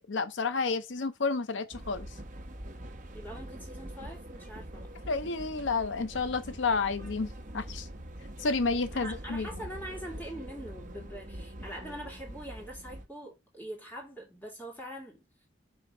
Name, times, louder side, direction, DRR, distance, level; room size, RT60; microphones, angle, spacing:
voice 1, 0.1-2.1 5.1-7.9 8.4-9.5, left 4 dB, 80° left, 0.7 m, -30 dB
sound 1, 1.7-13.1, right 1 dB, 45° right, 1.2 m, -44 dB
voice 2, 3.1-4.9 8.9-15.2, equal, 10° left, 2.9 m, -43 dB
5.6 x 4.1 x 5.0 m
head